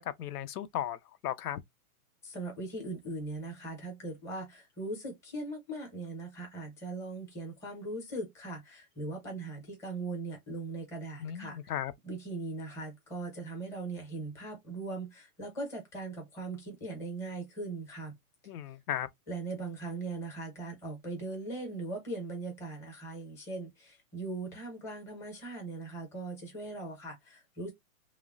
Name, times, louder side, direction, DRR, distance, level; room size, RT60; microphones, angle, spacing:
voice 1, 0.0-1.6 11.2-11.9 18.5-19.1, left 11 dB, 85° left, 0.5 m, -36 dB
voice 2, 2.2-11.6 12.0-18.1 19.3-27.7, right 2 dB, 5° left, 0.6 m, -39 dB
3.1 x 2.0 x 2.4 m
hypercardioid pair, 150°, 44 cm